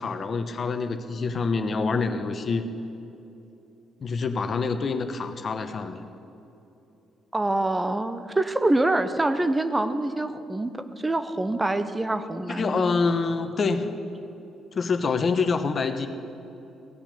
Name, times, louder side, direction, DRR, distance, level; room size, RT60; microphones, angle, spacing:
voice 1, 0.0-2.7 4.0-6.0 12.5-13.9 14.7-16.1, left 4 dB, 50° left, 8 dB, 1.0 m, -26 dB
voice 2, 7.3-10.7 11.0-12.9, right 2 dB, 20° right, 11 dB, 0.8 m, -25 dB
16.5 x 6.0 x 8.4 m, 2.9 s
hypercardioid pair, 55°, 0 cm